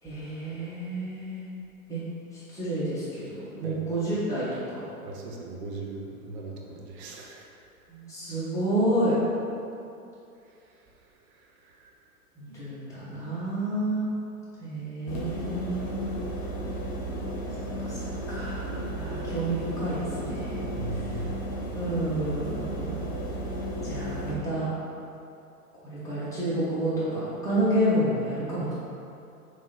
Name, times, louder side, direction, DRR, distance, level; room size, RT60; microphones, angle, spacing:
voice 1, 0.0-1.5 1.9-2.0 2.3-4.9 7.9-9.2 12.3-14.1 14.6-16.0 17.3-20.6 20.9-21.2 21.7-23.0 23.8-24.7 25.8-28.7, right 1 dB, 5° left, -12 dB, 1.4 m, -30 dB
voice 2, 5.0-7.5 11.6-11.9 20.7-21.4, right 2 dB, 45° right, 0 dB, 0.7 m, -38 dB
sound 1, 15.1-24.3, right 1 dB, 35° left, 1.0 m, -33 dB
3.5 x 2.9 x 3.3 m, 2.7 s
hypercardioid pair, 115°, 46 cm